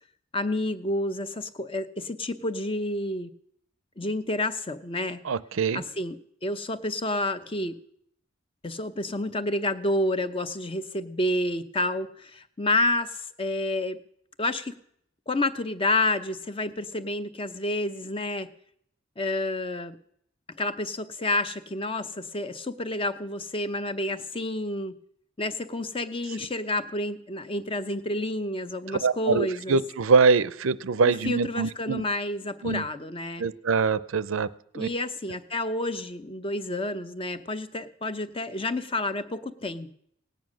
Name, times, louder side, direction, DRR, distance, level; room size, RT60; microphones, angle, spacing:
voice 1, 0.3-3.3 4.0-5.2 5.7-6.2 6.4-7.8 8.6-14.0 14.4-14.8 15.3-18.5 19.2-20.0 20.5-24.9 25.4-29.8 31.0-33.4 34.7-40.0, left 2 dB, 25° left, 11 dB, 0.7 m, -29 dB
voice 2, 5.2-5.8 29.0-32.0 32.6-32.8 33.4-34.5 34.7-34.9, right 4 dB, 80° right, 17 dB, 0.6 m, -24 dB
17.5 x 9.2 x 6.3 m, 0.69 s
head